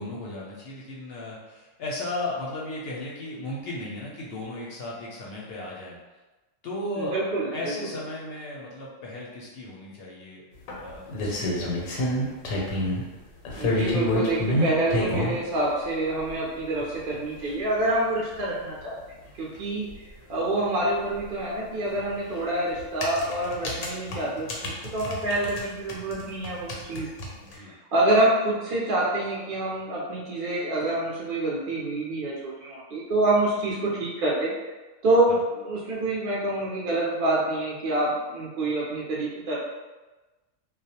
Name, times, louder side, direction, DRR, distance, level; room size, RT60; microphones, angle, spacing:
voice 1, 0.0-5.9 6.6-7.2 7.5-10.4 10.8-12.4 27.3-27.7 35.3-35.4, left 1 dB, 65° left, -4 dB, 0.7 m, -36 dB
voice 2, 7.0-7.7 13.5-18.9 19.4-19.9 20.3-27.1 27.6-34.5 35.0-39.6, right 1 dB, 60° right, -5 dB, 0.6 m, -26 dB
sound 1, 10.7-13.0 13.5-15.4 16.3-16.4 16.8-16.9 17.1-17.2 17.5-17.6 19.5-19.6 19.9-20.0 21.9-22.1 22.8-25.6 25.9-27.5, left 1 dB, 90° left, 1.0 m, -28 dB
2.3 x 2.0 x 2.7 m, 1.2 s
omnidirectional pair, 1.3 m